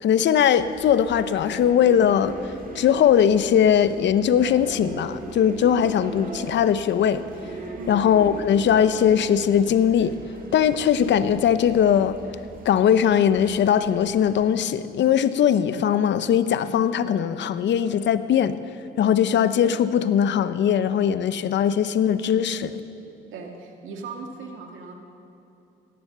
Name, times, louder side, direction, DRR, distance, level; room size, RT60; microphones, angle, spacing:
voice 1, 0.0-7.2 7.9-10.2 10.5-12.2 12.6-18.6 19.0-22.8, left 8 dB, 65° left, 13 dB, 0.7 m, -20 dB
sound 1, 0.6-14.5, right 3 dB, 45° right, 1.8 m, -40 dB
voice 2, 23.3-24.9, right 4 dB, 85° right, 2 dB, 1.9 m, -38 dB
17.0 x 10.5 x 6.8 m, 2.9 s
cardioid pair, 90°, 20 cm